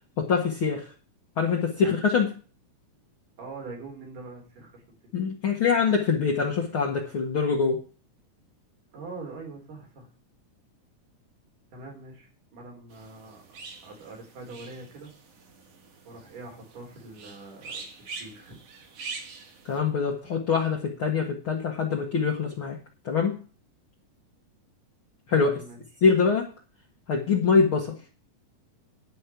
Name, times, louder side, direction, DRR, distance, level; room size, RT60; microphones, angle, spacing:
voice 1, 0.2-0.9 1.4-2.3 5.1-7.8 19.7-22.8 23.0-23.3 25.3-25.6 26.0-26.5 27.1-28.0, left 5 dB, 50° left, -1 dB, 1.9 m, -24 dB
voice 2, 3.4-4.8 8.9-10.1 11.7-15.1 16.1-17.8 18.2-18.6 25.3-25.8, right 3 dB, 80° right, 0 dB, 5.2 m, -43 dB
sound 1, 12.9-19.8, right 4 dB, 55° right, 2.7 m, -44 dB
11.0 x 5.4 x 8.2 m, 0.37 s
omnidirectional pair, 3.7 m